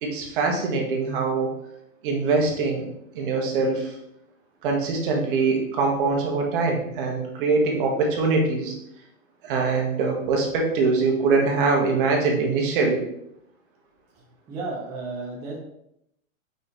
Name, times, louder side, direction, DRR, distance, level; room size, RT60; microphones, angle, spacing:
voice 1, 0.0-1.5 2.0-2.9 3.1-3.9 4.6-8.7 9.4-13.0, right 4 dB, 40° right, 0 dB, 1.6 m, -23 dB
voice 2, 14.1-15.6, right 3 dB, 5° right, -6 dB, 0.5 m, -34 dB
5.3 x 4.5 x 4.1 m, 0.79 s
hypercardioid pair, 155°, 41 cm